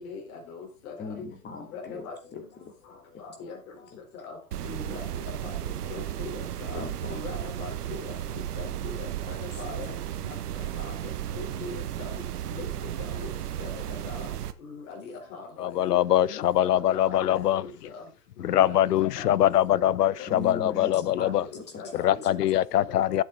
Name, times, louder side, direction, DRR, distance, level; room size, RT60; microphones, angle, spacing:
voice 1, 0.0-1.3 1.7-2.2 3.2-3.6 4.1-4.4 4.6-5.0 5.4-5.5 5.9-6.8 7.1-8.1 8.6-10.0 10.8-10.9 11.3-12.1 12.5-13.3 13.6-14.3 14.6-17.7 17.9-18.0 18.4-19.8 20.9-21.3 21.8-22.3 22.7-23.2, left 4 dB, 60° left, 4.1 m, -41 dB
voice 2, 1.0-2.7 3.9-4.0 6.7-7.2 20.3-22.2, left 4 dB, 20° left, 2.8 m, -39 dB
sound 1, 4.5-14.5, right 11 dB, 75° right, 1.2 m, -34 dB
voice 3, 15.6-17.7 18.4-21.4 22.0-23.2, left 12 dB, 85° left, 0.7 m, -23 dB
11.5 x 8.2 x 3.9 m
hypercardioid pair, 115°, 46 cm